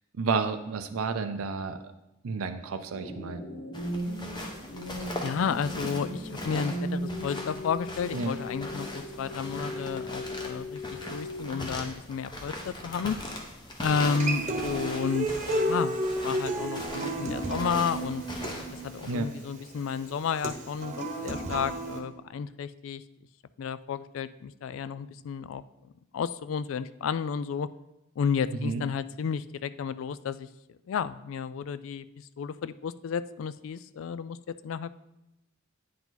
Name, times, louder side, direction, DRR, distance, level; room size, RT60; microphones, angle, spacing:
voice 1, 0.2-1.8 2.2-3.4 8.1-8.3 19.1-19.3 28.5-28.8, right 4 dB, 90° right, 7 dB, 0.5 m, -31 dB
sound 1, 2.9-11.9, equal, 80° left, 1.9 m, -38 dB
sound 2, 3.7-19.1, left 1 dB, 20° left, 1.0 m, -40 dB
voice 2, 5.2-10.8 11.1-13.2 13.8-16.0 16.2-18.2 18.7-23.0 23.6-25.6 26.1-27.7 28.2-30.5 30.9-35.0, left 6 dB, 65° left, 15 dB, 0.3 m, -32 dB
Human voice / Acoustic guitar, 14.0-22.0, right 1 dB, 35° right, 1.0 m, -32 dB
9.2 x 4.8 x 3.9 m, 0.92 s
head